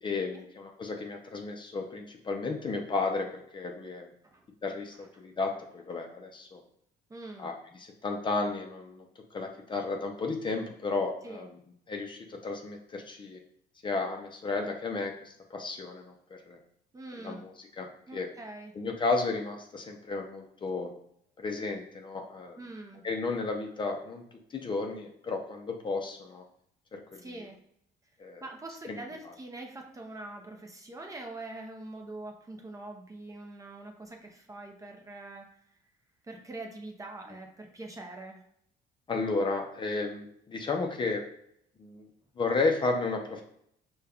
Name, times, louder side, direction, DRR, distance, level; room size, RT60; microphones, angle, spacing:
voice 1, 0.0-3.3 3.5-4.1 4.6-6.6 7.4-7.5 7.8-9.0 9.3-11.6 11.9-13.4 13.8-16.1 16.5-16.6 17.2-18.3 18.8-20.9 21.4-22.6 23.0-24.2 24.5-26.4 26.9-27.2 28.2-28.4 28.9-29.0 39.1-41.2 41.8-42.1 42.4-43.4, left 3 dB, 30° left, 2 dB, 0.5 m, -33 dB
voice 2, 7.1-7.5 11.2-11.5 16.9-17.4 18.1-18.7 22.6-23.0 27.1-27.6 28.4-35.8 36.2-38.4, right 2 dB, 20° right, 2 dB, 0.6 m, -44 dB
5.1 x 2.3 x 2.3 m, 0.70 s
cardioid pair, 110°, 17 cm